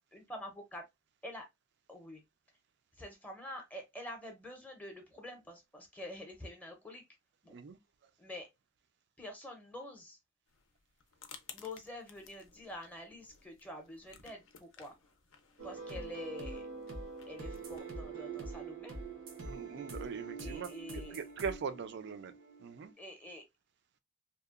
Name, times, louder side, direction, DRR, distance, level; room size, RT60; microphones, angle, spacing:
voice 1, 0.1-0.9 1.2-1.5 1.9-2.2 3.0-7.0 7.4-7.5 8.2-8.5 9.2-10.2 11.5-14.9 15.6-16.6 17.3-19.0 20.4-21.2 23.0-23.4, left 1 dB, 10° left, 0.6 m, -47 dB
sound 1, 10.5-17.8, left 7 dB, 70° left, 0.4 m, -57 dB
sound 2, 15.6-22.9, right 3 dB, 90° right, 0.8 m, -44 dB
voice 2, 19.4-22.3 22.6-22.9, right 5 dB, 60° right, 0.4 m, -41 dB
2.8 x 2.1 x 2.3 m
head